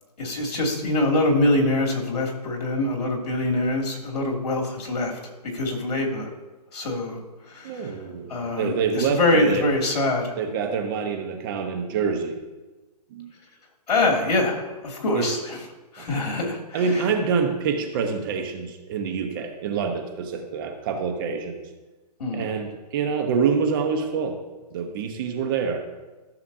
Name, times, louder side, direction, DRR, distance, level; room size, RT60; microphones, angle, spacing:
voice 1, 0.2-5.2 5.4-6.3 6.7-7.2 7.5-7.9 8.3-10.3 13.9-15.6 15.9-16.8 22.2-22.5, left 2 dB, 65° left, 0 dB, 2.7 m, -24 dB
voice 2, 7.6-9.7 10.4-12.4 13.1-13.3 15.1-15.3 16.0-16.1 16.7-21.6 22.3-24.4 24.7-25.9, right 5 dB, 30° right, 5 dB, 1.0 m, -26 dB
14.5 x 7.0 x 2.7 m, 1.2 s
hypercardioid pair, 150°, 21 cm